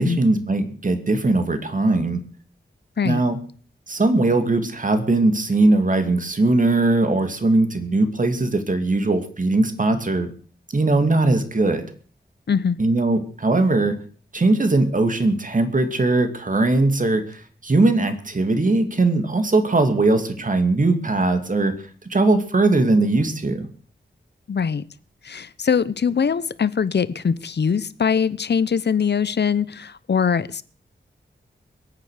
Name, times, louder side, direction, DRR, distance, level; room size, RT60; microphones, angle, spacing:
voice 1, 0.0-2.2 3.0-3.4 3.9-10.3 10.7-11.9 12.8-14.0 14.3-21.8 22.1-23.7, right 2 dB, 45° right, 2.7 m, -20 dB
voice 2, 24.5-24.8 25.2-30.6, left 6 dB, 65° left, 0.9 m, -22 dB
22.0 x 9.2 x 6.6 m
wide cardioid pair, 75°, 18 cm